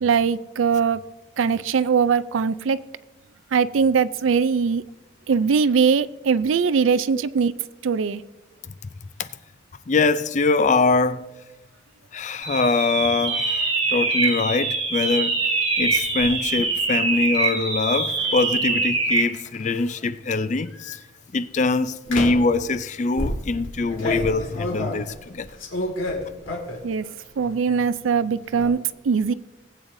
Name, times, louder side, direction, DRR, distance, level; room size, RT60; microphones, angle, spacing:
voice 1, 0.0-1.0 1.4-2.8 3.5-4.8 5.3-7.5 7.8-8.2 26.8-27.1 27.4-28.8 29.0-29.3, right 6 dB, 85° right, 0.4 m, -21 dB
voice 2, 9.9-11.3 12.1-15.5 15.8-21.0 21.3-25.5, left 3 dB, 40° left, 0.4 m, -23 dB
sound 1, 12.4-19.4, right 3 dB, 30° right, 1.3 m, -24 dB
sound 2, 15.8-16.3 18.1-18.3 19.1-19.9 20.7-21.0 22.1-22.6 23.2-26.9 27.3-27.8 28.1-28.7, left 1 dB, 90° left, 2.1 m, -31 dB
19.0 x 8.6 x 2.6 m
head